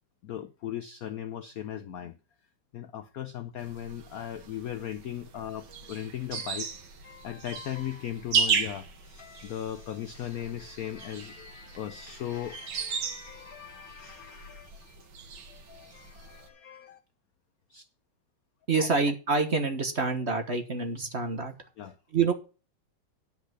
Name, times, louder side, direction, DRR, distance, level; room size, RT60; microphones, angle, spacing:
voice 1, 0.2-2.2 2.7-15.1 15.3-17.0 17.7-17.8 18.8-18.9 21.8-22.0, left 11 dB, 70° left, 0.8 m, -38 dB
Lake King William Ambience, 3.6-16.5, right 6 dB, 75° right, 2.1 m, -36 dB
voice 2, 18.7-21.5 22.1-22.3, right 4 dB, 35° right, 1.3 m, -27 dB
10.0 x 5.6 x 7.8 m
omnidirectional pair, 2.2 m